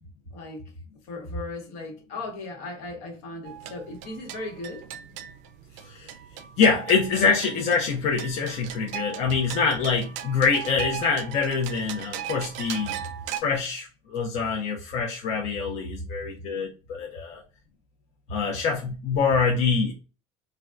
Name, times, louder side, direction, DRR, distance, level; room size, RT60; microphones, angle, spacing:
voice 1, 0.3-0.7 1.0-4.9, left 2 dB, 75° left, 1.1 m, -36 dB
sound 1, 3.4-13.4, right 11 dB, 60° right, 0.4 m, -38 dB
voice 2, 6.6-13.0 13.3-17.4 18.3-19.9, left 5 dB, 50° left, 0.5 m, -25 dB
3.4 x 2.2 x 2.4 m
cardioid pair, 160°, 14 cm